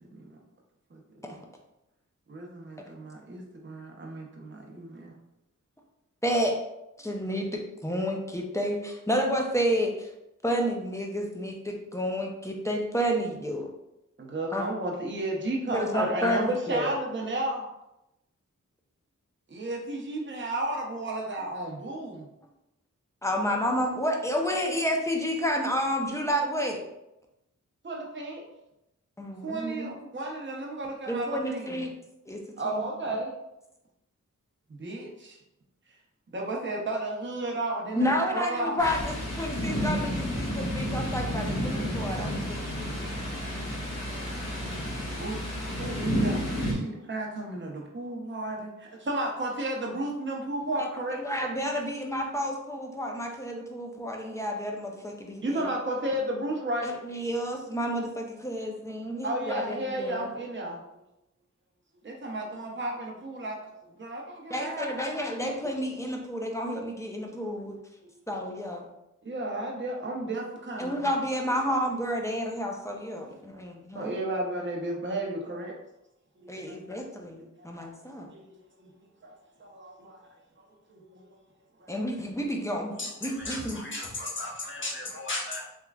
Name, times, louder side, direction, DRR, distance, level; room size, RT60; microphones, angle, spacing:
voice 1, 0.0-0.4 0.9-1.0 2.3-5.2 14.2-17.6 19.5-22.3 27.8-28.4 29.4-31.8 32.6-33.3 34.7-35.4 36.3-38.8 44.6-51.2 55.4-57.0 59.2-60.8 62.0-63.6 64.0-65.1 69.2-71.0 73.9-75.7 76.4-76.8 77.6-77.7 78.3-78.4 78.8-78.9 79.2-79.3 79.6-80.4 80.9-81.2 81.8-81.9, right 1 dB, 35° right, -1 dB, 0.8 m, -33 dB
voice 2, 6.2-6.5 7.0-10.1 10.4-13.7 14.5-14.6 15.7-16.9 23.2-26.8 29.2-29.9 31.1-31.9 32.3-32.8 37.9-42.9 51.2-55.7 56.8-60.3 64.5-67.7 68.3-68.9 70.8-74.1 76.5-78.3 81.9-82.9 83.2-83.8, equal, 10° left, 1 dB, 0.6 m, -30 dB
Thunder, 38.8-46.7, equal, 50° left, 1.3 m, -31 dB
voice 3, 83.0-85.7, left 2 dB, 35° left, -2 dB, 1.0 m, -35 dB
3.5 x 2.9 x 2.3 m, 0.88 s
cardioid pair, 45°, 32 cm